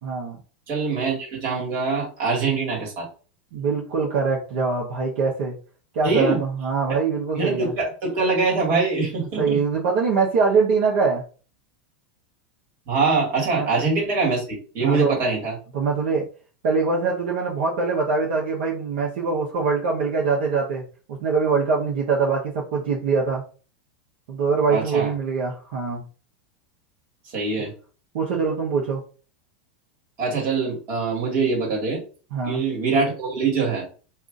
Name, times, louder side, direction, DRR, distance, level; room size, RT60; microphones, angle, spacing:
voice 1, 0.0-0.4 3.5-5.6 5.9-7.7 9.2-11.2 13.5-13.7 14.8-15.2 15.7-16.2 16.6-23.4 24.3-26.0 28.1-29.0 32.3-32.6, right 4 dB, 70° right, -3 dB, 1.0 m, -23 dB
voice 2, 0.7-3.1 6.0-6.4 7.3-9.6 12.9-15.5 24.7-25.1 27.3-27.7 30.2-32.0 32.4-33.9, right 4 dB, 45° right, -1 dB, 1.8 m, -23 dB
2.7 x 2.6 x 3.7 m, 0.37 s
supercardioid pair, 130°, 6 cm